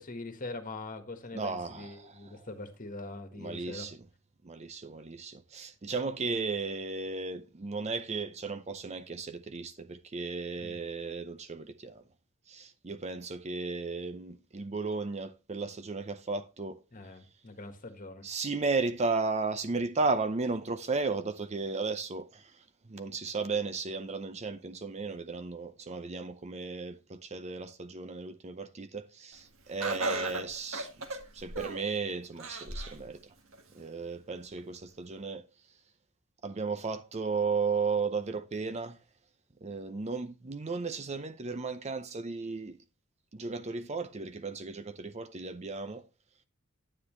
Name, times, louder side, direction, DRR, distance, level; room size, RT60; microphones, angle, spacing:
voice 1, 0.0-3.9 10.6-10.7 16.9-18.2, left 2 dB, 40° left, 1.6 m, -42 dB
voice 2, 1.3-2.5 3.4-4.0 4.4-12.0 12.5-16.8 18.2-33.3 33.7-35.4 36.4-39.0 39.6-42.8 43.3-46.0, right 4 dB, 35° right, 0.6 m, -35 dB
Laughter, 29.8-31.9 32.4-33.0 33.5-33.6 34.6-34.7, right 2 dB, 80° right, 1.8 m, -35 dB
9.8 x 9.5 x 3.2 m
head